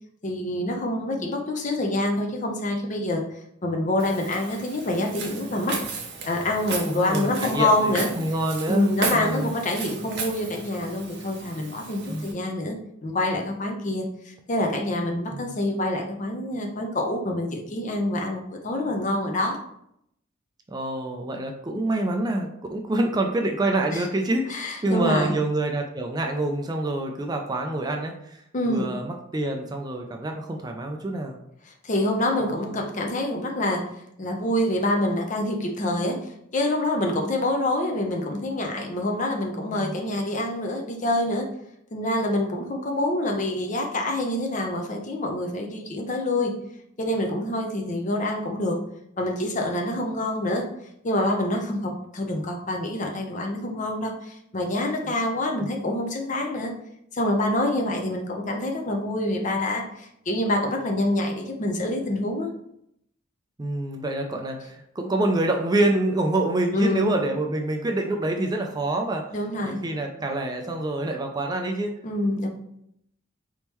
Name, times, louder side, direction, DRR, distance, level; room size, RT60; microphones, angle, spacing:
voice 1, 0.2-3.2 3.6-5.8 6.2-8.1 8.7-12.8 13.0-19.6 23.9-24.1 24.5-25.3 28.5-28.9 31.8-33.9 34.2-36.2 36.5-41.5 41.9-46.5 47.0-48.8 49.2-50.6 51.0-56.7 57.1-62.5 66.7-67.1 69.3-69.8 72.0-72.5, left 1 dB, 40° left, 2 dB, 0.7 m, -26 dB
Walk footsteps, 4.0-12.3, right 4 dB, 60° right, 0.8 m, -35 dB
voice 2, 6.9-9.5 12.1-12.3 15.3-15.5 20.7-31.4 32.5-32.8 39.1-39.3 39.7-40.0 55.6-55.7 63.6-69.3 69.6-71.9, right 2 dB, 20° right, 3 dB, 0.4 m, -27 dB
4.2 x 3.6 x 3.0 m, 0.74 s
head